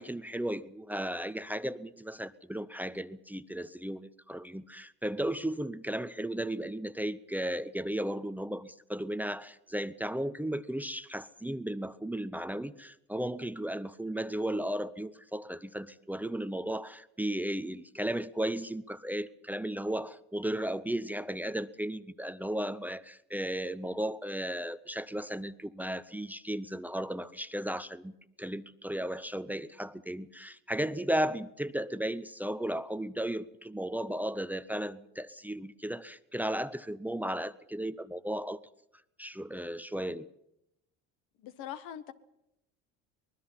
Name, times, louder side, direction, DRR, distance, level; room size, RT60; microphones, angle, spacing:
voice 1, 0.0-28.1 28.4-38.6 39.2-40.3, right 1 dB, 5° right, 15 dB, 0.7 m, -35 dB
voice 2, 41.4-42.1, left 10 dB, 75° left, 11 dB, 1.6 m, -42 dB
24.0 x 20.0 x 5.7 m, 0.83 s
supercardioid pair, 95°, 31 cm